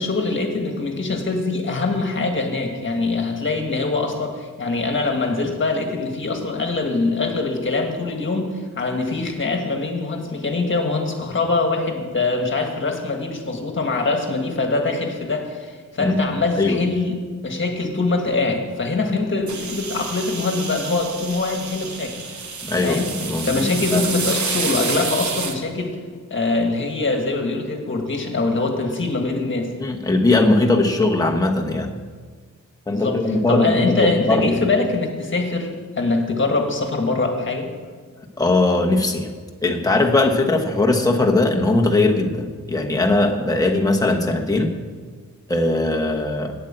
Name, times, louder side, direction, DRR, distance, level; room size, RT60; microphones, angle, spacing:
voice 1, 0.0-17.2 17.4-22.2 22.8-23.1 23.4-26.0 26.3-29.7 32.9-33.2 33.5-35.7 35.9-37.7, left 3 dB, 40° left, 3 dB, 1.6 m, -23 dB
sound 1, 19.5-25.6, right 5 dB, 65° right, 1.1 m, -29 dB
voice 2, 22.6-23.6 23.9-24.0 29.8-31.9 32.9-34.5 38.4-39.3 39.6-44.7 45.5-46.5, left 2 dB, 10° left, 1 dB, 1.0 m, -19 dB
8.2 x 7.9 x 8.8 m, 1.5 s
wide cardioid pair, 160°, 32 cm